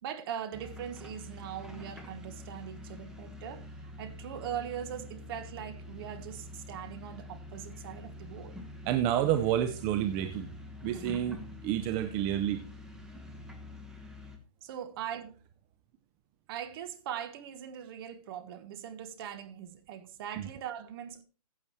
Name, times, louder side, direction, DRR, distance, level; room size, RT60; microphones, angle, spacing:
voice 1, 0.0-8.5 14.6-15.3 16.5-21.2, right 9 dB, 40° right, 1.3 m, -41 dB
sound 1, 0.5-14.4, left 2 dB, 5° right, 1.3 m, -46 dB
voice 2, 8.9-10.5 10.8-12.6 20.3-20.5, right 11 dB, 20° right, 0.6 m, -29 dB
15.0 x 8.0 x 3.1 m
hypercardioid pair, 140°, 20 cm